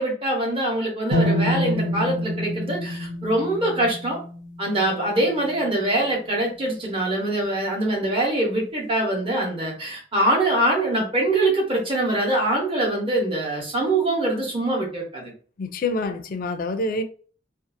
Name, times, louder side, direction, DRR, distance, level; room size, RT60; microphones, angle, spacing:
voice 1, 0.0-4.2 4.6-15.3, right 1 dB, 30° right, 1.0 m, -23 dB
sound 1, 1.1-5.1, equal, 85° right, 0.9 m, -26 dB
voice 2, 15.6-17.0, left 2 dB, 50° left, 0.4 m, -26 dB
2.6 x 2.3 x 2.6 m
head